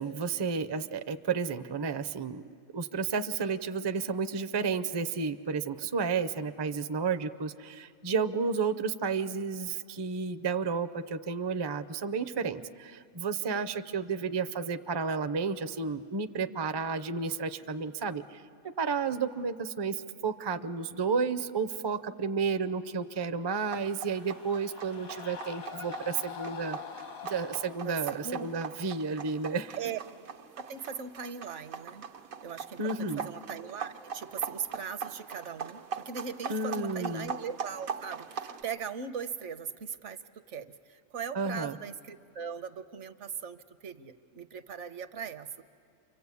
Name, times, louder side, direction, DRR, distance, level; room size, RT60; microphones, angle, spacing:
voice 1, 0.0-2.4 2.7-26.8 27.2-29.8 32.8-33.3 36.5-37.3 41.3-41.8, right 5 dB, 35° right, 10 dB, 0.4 m, -32 dB
sound 1, 23.3-27.8, left 8 dB, 90° left, 1.8 m, -44 dB
sound 2, 23.6-38.6, right 6 dB, 85° right, 1.6 m, -42 dB
voice 2, 27.8-28.7 29.8-30.0 30.6-32.1 32.4-45.5, right 6 dB, 65° right, 11 dB, 1.1 m, -39 dB
29.0 x 24.5 x 8.4 m, 2.3 s
omnidirectional pair, 1.4 m